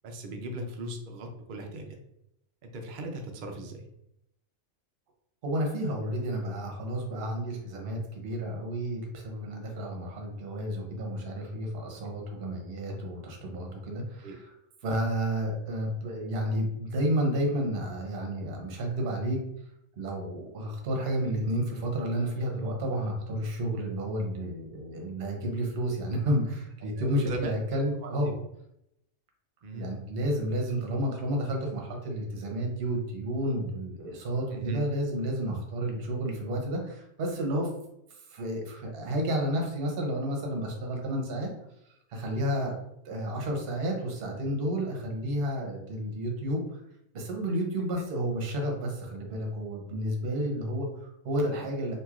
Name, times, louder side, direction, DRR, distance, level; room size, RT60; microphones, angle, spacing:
voice 1, 0.0-2.0 2.6-3.8 14.2-14.3 27.0-27.5 28.0-28.1 29.6-29.9 34.5-34.8, right 1 dB, 75° right, 3 dB, 0.4 m, -37 dB
voice 2, 5.4-14.4 14.8-19.4 20.0-28.3 29.8-37.7 38.3-41.5 42.1-42.7 43.0-46.8 47.1-51.9, equal, 50° right, 1 dB, 0.8 m, -31 dB
3.0 x 2.7 x 2.4 m, 0.79 s
omnidirectional pair, 1.5 m